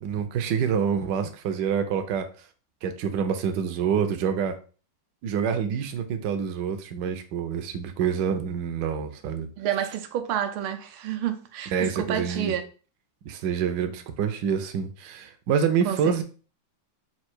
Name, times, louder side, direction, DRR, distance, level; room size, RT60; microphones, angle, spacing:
voice 1, 0.0-2.3 2.8-4.6 5.2-9.5 11.7-12.5 13.2-16.2, right 7 dB, 70° right, 1.1 m, -27 dB
voice 2, 9.6-12.6 15.8-16.2, right 10 dB, 90° right, 1.5 m, -29 dB
4.4 x 2.5 x 4.4 m
omnidirectional pair, 2.3 m